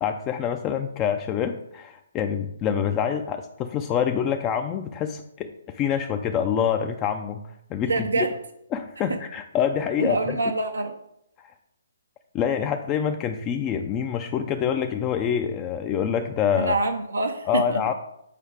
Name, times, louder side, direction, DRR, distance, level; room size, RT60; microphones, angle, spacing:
voice 1, 0.0-8.3 8.7-10.4 11.4-11.5 12.3-16.8 17.5-17.9, left 8 dB, 25° left, 6 dB, 0.4 m, -26 dB
voice 2, 7.8-8.3 9.1-9.2 10.0-10.9 16.6-17.8, right 3 dB, 90° right, 4 dB, 0.6 m, -26 dB
8.3 x 4.6 x 3.5 m, 0.79 s
hypercardioid pair, 140°, 0 cm